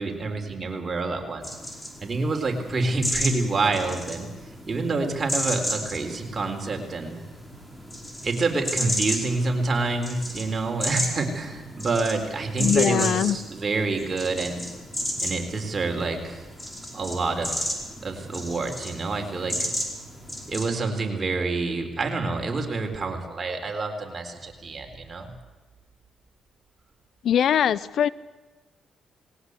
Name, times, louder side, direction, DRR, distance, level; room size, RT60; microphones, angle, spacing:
voice 1, 0.0-7.2 8.2-14.6 15.2-16.5 16.9-17.8 18.0-19.7 20.5-25.3, right 3 dB, 35° right, 3 dB, 4.2 m, -28 dB
sound 1, 1.4-20.7, equal, 15° left, 4.8 m, -33 dB
voice 2, 12.6-13.4 27.2-28.1, left 9 dB, 70° left, 20 dB, 0.6 m, -21 dB
20.0 x 18.0 x 8.3 m, 1.2 s
supercardioid pair, 70°, 0 cm